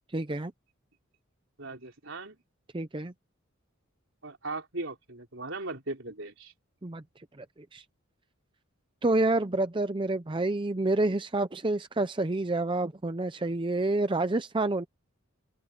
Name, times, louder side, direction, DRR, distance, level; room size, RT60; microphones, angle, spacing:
voice 1, 0.1-0.5 2.7-3.1 6.8-7.0 7.4-7.5 7.7-7.8 9.0-14.9, right 2 dB, 25° right, 0.6 m, -28 dB
voice 2, 1.6-2.4 4.2-6.5, right 2 dB, 65° right, 4.3 m, -38 dB
open air
head